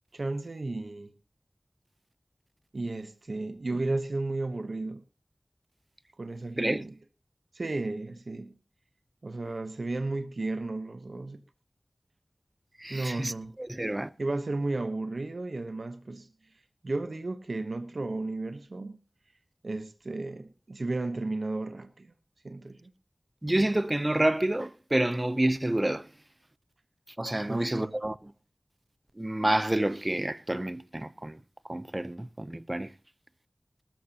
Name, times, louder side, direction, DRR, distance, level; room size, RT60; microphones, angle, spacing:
voice 1, 0.1-1.1 2.7-5.0 6.2-6.9 7.5-8.6 9.2-11.4 12.9-13.6 14.2-16.3 16.8-19.0 19.6-22.1 22.4-22.9 27.5-28.0, right 2 dB, 80° right, 1.1 m, -33 dB
voice 2, 12.8-13.3 13.7-14.1 23.4-26.1 27.2-28.1 29.2-31.4 31.7-32.9, right 1 dB, 30° right, 0.8 m, -28 dB
20.0 x 13.0 x 2.9 m
wide cardioid pair, 45°, 0 cm